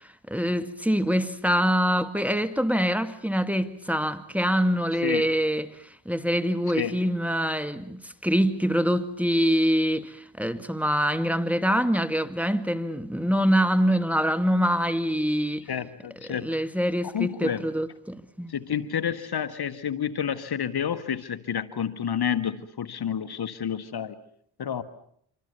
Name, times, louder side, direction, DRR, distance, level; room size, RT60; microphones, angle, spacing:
voice 1, 0.3-5.7 6.1-15.7 16.4-18.5, equal, 5° right, 1.9 m, -25 dB
voice 2, 5.0-5.3 6.8-7.0 15.7-16.6 17.0-17.7 18.5-24.2 24.6-24.8, left 8 dB, 50° left, 1.8 m, -30 dB
27.0 x 25.0 x 7.0 m
supercardioid pair, 50°, 48 cm